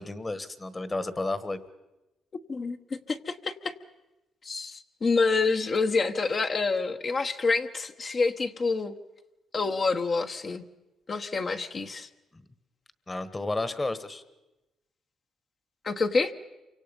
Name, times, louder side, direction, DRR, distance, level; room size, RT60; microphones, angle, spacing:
voice 1, 0.0-1.6 12.3-12.4 13.1-14.2, left 2 dB, 20° left, 13 dB, 1.4 m, -32 dB
voice 2, 2.5-3.7 4.4-8.9 9.5-10.6 11.1-12.1 15.8-16.3, left 4 dB, 40° left, 5 dB, 1.1 m, -27 dB
28.0 x 24.5 x 5.3 m, 1.0 s
cardioid pair, 90°, 0 cm